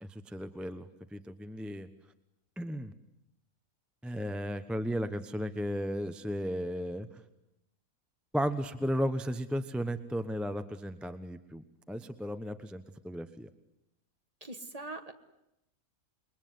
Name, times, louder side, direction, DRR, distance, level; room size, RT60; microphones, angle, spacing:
voice 1, 0.0-1.9 2.6-2.9 4.0-7.2 8.3-13.5, equal, ahead, 9 dB, 0.9 m, -35 dB
voice 2, 14.4-15.1, right 2 dB, 25° right, 7 dB, 1.6 m, -42 dB
28.0 x 22.0 x 9.5 m, 0.84 s
omnidirectional pair, 1.5 m